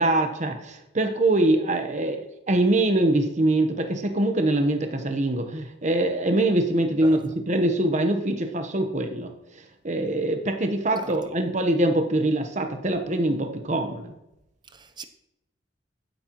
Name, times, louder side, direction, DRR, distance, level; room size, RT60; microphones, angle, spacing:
voice 1, 0.0-9.3 9.8-14.1, right 1 dB, 40° right, 1.1 m, -23 dB
voice 2, 14.7-15.0, right 3 dB, 25° right, 0.7 m, -39 dB
15.0 x 8.4 x 3.1 m
head